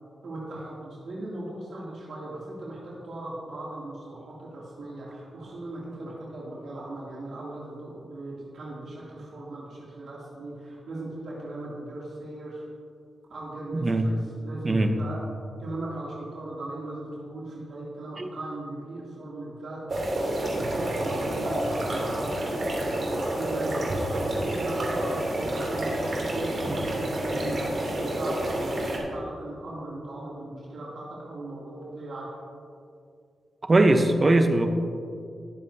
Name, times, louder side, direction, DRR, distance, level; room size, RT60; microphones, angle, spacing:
voice 1, 0.2-12.7 13.3-15.2 15.6-19.8 20.5-32.3, right 2 dB, 75° right, -6 dB, 2.8 m, -38 dB
voice 2, 13.7-14.1 14.6-14.9 18.2-18.3 33.6-34.7, right 2 dB, 35° right, 6 dB, 1.0 m, -20 dB
sound 1, 19.9-29.0, right 1 dB, 55° right, 3.1 m, -29 dB
20.5 x 7.5 x 2.8 m, 2.4 s
cardioid pair, 80°, 0 cm